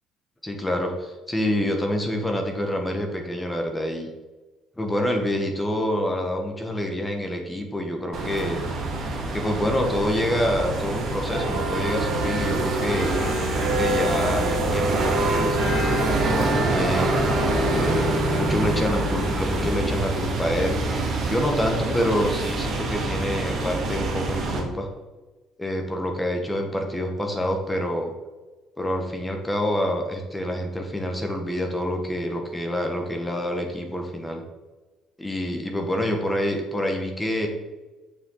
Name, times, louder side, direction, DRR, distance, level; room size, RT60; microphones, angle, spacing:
voice 1, 0.4-4.1 4.8-8.6 9.3-13.1 13.8-17.2 17.7-20.8 21.3-24.9 25.6-28.1 28.8-34.4 35.2-37.5, left 1 dB, 10° left, 3 dB, 1.2 m, -27 dB
sound 1, 8.1-24.6, right 2 dB, 40° right, 1.8 m, -25 dB
9.1 x 6.7 x 3.8 m, 1.2 s
cardioid pair, 160°, 0 cm